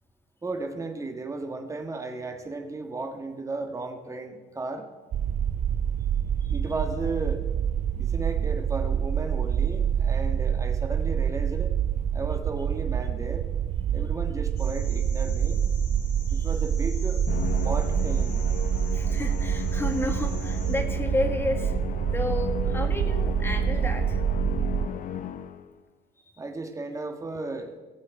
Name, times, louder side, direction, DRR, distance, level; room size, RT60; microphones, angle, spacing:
voice 1, 0.4-4.9 6.5-7.4 7.9-11.7 12.1-13.4 13.9-15.6 16.3-17.2 17.6-18.4 26.4-27.7, right 3 dB, 20° right, 4 dB, 1.5 m, -34 dB
sound 1, 5.1-24.9, right 8 dB, 45° right, 0.4 m, -26 dB
sound 2, 14.6-20.8, left 3 dB, 75° left, 4.3 m, -47 dB
Musical instrument, 17.3-25.8, left 9 dB, 50° left, 0.7 m, -35 dB
voice 2, 18.9-21.8 22.1-24.2, left 2 dB, 15° left, 5 dB, 1.6 m, -31 dB
18.5 x 7.7 x 4.7 m, 1.3 s
cardioid pair, 110°, 17 cm